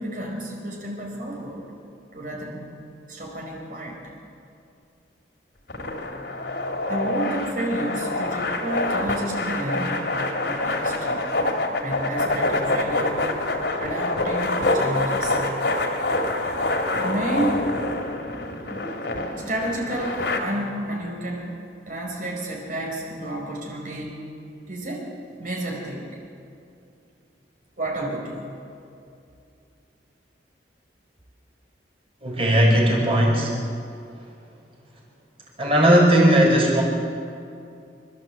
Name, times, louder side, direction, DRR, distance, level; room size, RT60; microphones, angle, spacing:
voice 1, 0.0-1.7 2.1-2.6 3.1-4.1 6.1-11.3 11.8-13.3 13.5-15.4 17.0-18.0 19.5-24.2 24.7-25.1 25.4-26.1 27.8-28.5, right 1 dB, 50° right, -2 dB, 4.9 m, -31 dB
sound 1, 5.7-20.4, left 2 dB, 70° left, 2.5 m, -26 dB
voice 2, 32.2-33.6 35.6-36.8, right 1 dB, 30° right, -1 dB, 5.2 m, -17 dB
26.5 x 13.0 x 7.9 m, 2.5 s
head